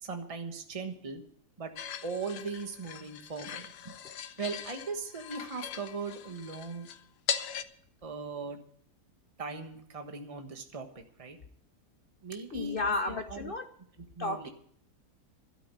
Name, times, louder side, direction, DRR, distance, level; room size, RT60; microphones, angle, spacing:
voice 1, 0.0-1.2 1.6-1.7 2.0-3.9 4.4-6.9 8.0-8.6 9.4-11.4 12.2-12.8 13.1-13.5 14.1-14.5, right 4 dB, 20° right, 5 dB, 1.3 m, -39 dB
sound 1, 1.8-7.6, left 8 dB, 90° left, 1.4 m, -39 dB
voice 2, 12.5-13.7 14.2-14.5, left 2 dB, 55° left, 8 dB, 0.6 m, -32 dB
12.5 x 8.5 x 8.3 m, 0.64 s
omnidirectional pair, 1.8 m